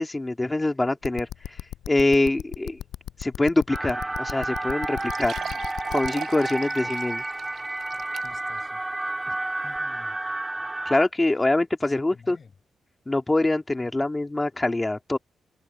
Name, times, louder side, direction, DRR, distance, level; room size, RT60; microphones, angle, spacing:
voice 1, 0.0-1.6 1.9-2.8 3.2-5.3 5.9-7.2 9.3-9.4 10.9-12.4 13.1-15.2, left 2 dB, 20° left, 2.7 m, -24 dB
sound 1, 1.0-6.1, left 12 dB, 85° left, 6.3 m, -35 dB
sound 2, 3.7-11.1, right 2 dB, 25° right, 2.6 m, -31 dB
sound 3, 4.1-4.2 4.5-4.6 5.0-8.6 9.1-9.2 9.7-9.8, right 8 dB, 70° right, 1.2 m, -38 dB
voice 2, 7.9-9.1 9.6-10.2 11.9-12.5 13.8-14.1, left 5 dB, 55° left, 6.4 m, -50 dB
open air
supercardioid pair, 50°, 0 cm